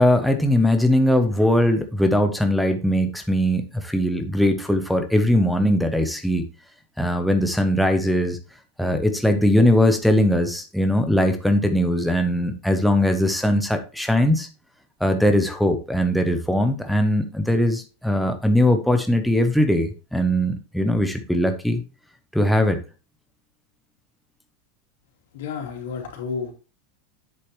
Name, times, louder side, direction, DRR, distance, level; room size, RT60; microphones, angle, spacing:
voice 1, 0.0-6.4 7.0-8.4 8.8-14.5 15.0-21.8 22.3-22.8, left 1 dB, ahead, 5 dB, 0.6 m, -20 dB
voice 2, 25.3-26.5, left 5 dB, 80° left, 2 dB, 2.7 m, -31 dB
8.0 x 6.7 x 3.0 m, 0.34 s
supercardioid pair, 175°, 0 cm